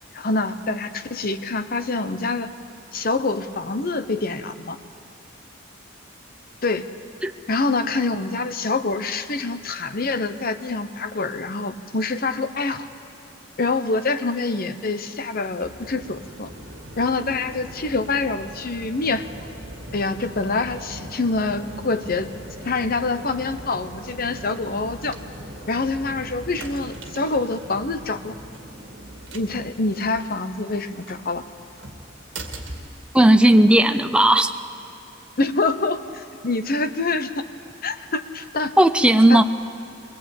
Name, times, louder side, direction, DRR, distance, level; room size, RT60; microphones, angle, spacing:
voice 1, 0.1-2.5 2.9-4.8 6.6-6.8 7.5-12.9 13.6-16.5 17.0-19.3 19.9-22.3 22.6-25.2 25.7-28.4 29.3-31.4 35.4-37.4 37.8-38.7 39.3-39.4, left 3 dB, 50° left, 9 dB, 1.0 m, -25 dB
sound 1, 15.6-33.7, right 1 dB, 65° right, 2.2 m, -40 dB
voice 2, 33.1-34.5 38.8-39.4, right 1 dB, 5° right, 7 dB, 0.6 m, -15 dB
23.0 x 19.0 x 8.5 m, 2.7 s
head